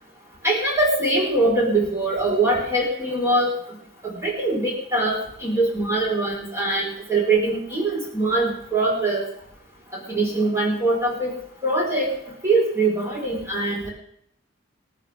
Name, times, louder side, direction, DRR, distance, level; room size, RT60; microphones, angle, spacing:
voice 1, 0.4-3.5 4.0-9.2 9.9-11.3 11.6-12.1 12.4-13.9, right 2 dB, 15° right, -3 dB, 5.2 m, -22 dB
27.5 x 9.2 x 3.8 m, 0.69 s
head